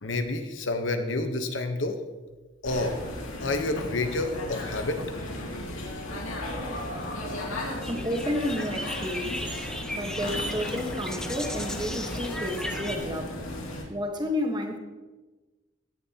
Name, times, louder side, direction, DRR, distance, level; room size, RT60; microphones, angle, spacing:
voice 1, 0.0-2.0 2.6-3.0 3.4-5.2, left 2 dB, 65° left, 6 dB, 1.0 m, -29 dB
sound 1, 2.6-13.8, left 1 dB, 85° left, 2.5 m, -35 dB
sound 2, 7.8-13.0, equal, 5° left, 0.7 m, -36 dB
voice 2, 7.9-9.5 9.9-13.3 13.9-14.8, equal, 20° right, 3 dB, 1.2 m, -31 dB
16.5 x 10.5 x 2.9 m, 1.2 s
head